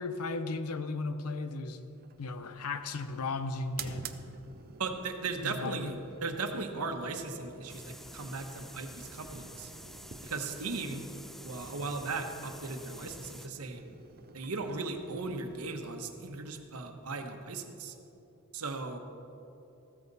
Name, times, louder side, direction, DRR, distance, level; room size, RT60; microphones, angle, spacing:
voice 1, 0.0-4.0 5.4-5.9, left 3 dB, 85° left, 10 dB, 0.8 m, -36 dB
sound 1, 1.9-17.2, right 5 dB, 45° right, 0.6 m, -51 dB
voice 2, 4.8-9.7 10.2-11.0 11.4-13.8 14.3-17.9 18.5-19.0, right 3 dB, 80° right, 5 dB, 1.2 m, -37 dB
sound 2, 7.7-13.5, equal, ahead, 0.3 m, -49 dB
14.5 x 13.5 x 4.1 m, 3.0 s
head